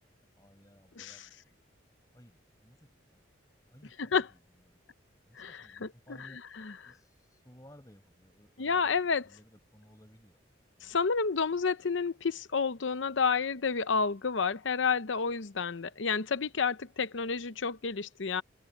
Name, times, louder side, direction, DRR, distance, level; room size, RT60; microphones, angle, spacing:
voice 1, 0.4-1.3 2.1-3.3 3.7-4.4 4.7-4.8 5.3-10.4 10.7-11.0, equal, 20° left, 5.7 m, -58 dB
voice 2, 5.4-6.3 6.6-6.9 8.6-9.3 10.8-18.4, left 5 dB, 75° left, 0.8 m, -30 dB
head